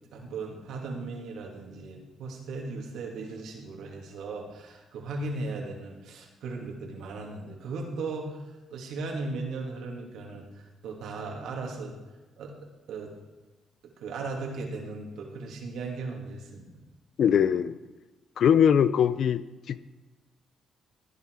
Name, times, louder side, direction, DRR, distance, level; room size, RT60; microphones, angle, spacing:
voice 1, 0.1-8.4 8.7-11.9 12.4-13.1 14.0-16.8, right 3 dB, 80° right, 0 dB, 3.0 m, -37 dB
voice 2, 17.2-17.8 18.4-19.4 19.7-19.8, left 8 dB, 65° left, 15 dB, 0.6 m, -21 dB
16.5 x 9.6 x 5.0 m, 1.1 s
cardioid pair, 90°, 0 cm